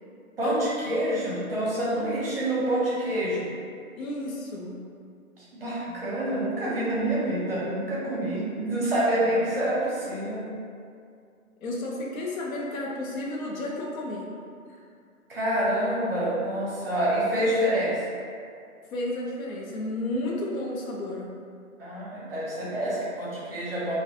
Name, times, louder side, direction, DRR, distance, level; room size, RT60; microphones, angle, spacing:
voice 1, 0.4-3.5 5.4-10.4 15.3-18.0 21.8-23.9, right 1 dB, 40° right, -7 dB, 0.6 m, -27 dB
voice 2, 4.0-4.8 11.6-14.3 14.7-14.8 18.9-21.3, left 1 dB, 70° left, -2 dB, 0.6 m, -32 dB
2.5 x 2.2 x 2.5 m, 2.4 s
hypercardioid pair, 175°, 43 cm